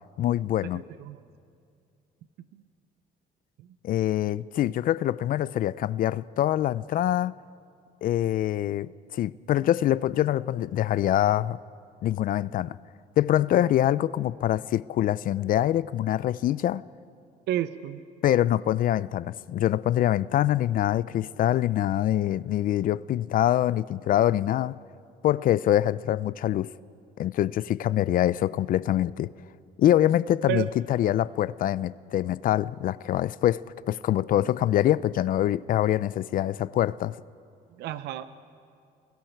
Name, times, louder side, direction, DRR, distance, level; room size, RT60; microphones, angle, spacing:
voice 1, 0.2-0.8 3.8-7.3 8.0-11.6 12.0-12.8 13.2-16.8 18.2-24.8 25.2-26.7 27.2-29.3 29.8-37.1, left 12 dB, 55° left, 0.5 m, -24 dB
voice 2, 0.7-1.2 2.5-2.6 3.6-3.7 17.5-18.0 30.5-30.7 37.8-38.2, right 11 dB, 80° right, 0.8 m, -31 dB
29.5 x 22.0 x 4.5 m
cardioid pair, 110°, 17 cm